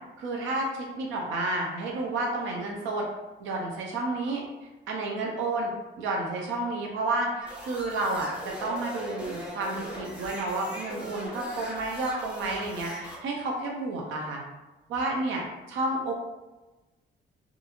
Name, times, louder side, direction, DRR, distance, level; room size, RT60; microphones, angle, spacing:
voice 1, 0.2-3.1 3.4-4.4 4.9-5.7 6.0-14.4 14.9-16.1, right 2 dB, 80° right, -1 dB, 0.5 m, -30 dB
sound 1, 7.4-13.2, equal, 5° right, 1.1 m, -40 dB
2.8 x 2.5 x 2.4 m, 1.1 s
cardioid pair, 85°, 20 cm